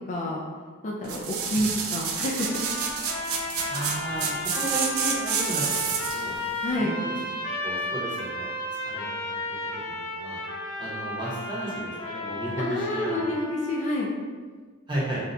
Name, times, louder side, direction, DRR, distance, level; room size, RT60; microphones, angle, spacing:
voice 1, 0.1-0.4 0.8-2.7 6.6-6.9 12.6-14.1, left 1 dB, 35° left, -2 dB, 0.3 m, -28 dB
sound 1, 1.0-6.3 6.8-6.9, right 6 dB, 75° right, 0.4 m, -29 dB
sound 2, 2.4-13.9, left 1 dB, 65° left, 0.8 m, -34 dB
voice 2, 3.7-6.4 6.8-8.5 8.8-9.4 9.9-10.4 10.8-13.2 14.9-15.2, right 1 dB, 20° right, -8 dB, 0.9 m, -34 dB
2.6 x 2.3 x 4.0 m, 1.5 s
head